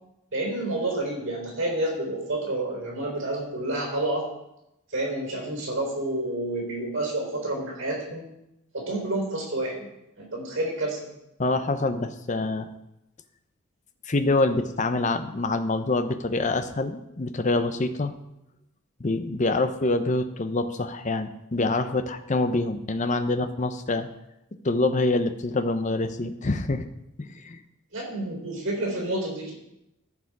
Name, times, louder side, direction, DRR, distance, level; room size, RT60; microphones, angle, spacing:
voice 1, 0.3-4.3 4.9-8.2 8.7-9.9 10.2-11.0 27.9-29.5, right 1 dB, 65° right, -1 dB, 3.8 m, -29 dB
voice 2, 11.4-12.7 14.1-18.1 19.0-24.1 24.6-26.8 27.2-27.6, left 2 dB, 35° left, 9 dB, 0.6 m, -26 dB
14.5 x 4.9 x 4.8 m, 0.87 s
head